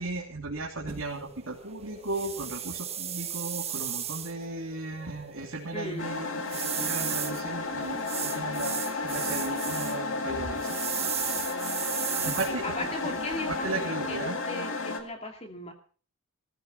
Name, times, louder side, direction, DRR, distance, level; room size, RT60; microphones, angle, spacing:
voice 1, 0.0-6.3 6.8-11.5 12.2-12.6 13.0-13.1 13.6-14.4, right 2 dB, 70° right, -1 dB, 3.0 m, -36 dB
sound 1, 0.9-13.9, right 9 dB, 30° right, 1.3 m, -36 dB
voice 2, 5.7-6.2 11.0-11.2 12.5-15.7, left 2 dB, 30° left, 4 dB, 2.6 m, -38 dB
sound 2, 6.0-15.0, left 3 dB, 60° left, 2.3 m, -33 dB
18.0 x 15.0 x 4.3 m, 0.40 s
head